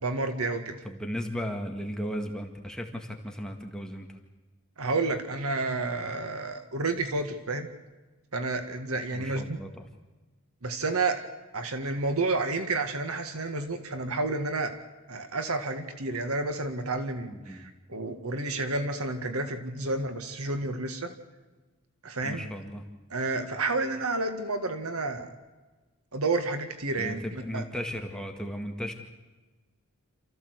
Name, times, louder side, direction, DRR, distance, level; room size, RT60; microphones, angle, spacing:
voice 1, 0.0-0.8 4.8-7.7 8.3-9.6 10.6-11.2 11.5-14.8 15.1-21.1 22.0-22.5 23.1-25.4 26.1-27.6, right 3 dB, 80° right, 8 dB, 2.0 m, -30 dB
voice 2, 0.8-4.2 9.1-9.8 17.3-17.7 22.2-22.8 27.0-28.9, equal, 5° left, 2 dB, 1.9 m, -36 dB
28.0 x 15.0 x 8.1 m, 1.2 s
head